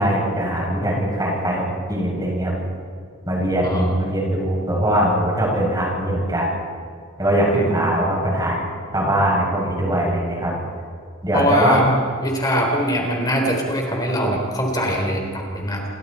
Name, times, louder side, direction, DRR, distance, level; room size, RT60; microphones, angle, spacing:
voice 1, 0.0-2.5 3.3-6.6 7.2-8.6 8.9-10.5 11.2-11.8, right 1 dB, 20° right, -3 dB, 7.4 m, -21 dB
voice 2, 3.6-3.9 7.5-7.8 11.3-11.8 12.2-15.9, equal, 20° left, 0 dB, 3.9 m, -22 dB
29.0 x 24.0 x 4.4 m, 2.2 s
head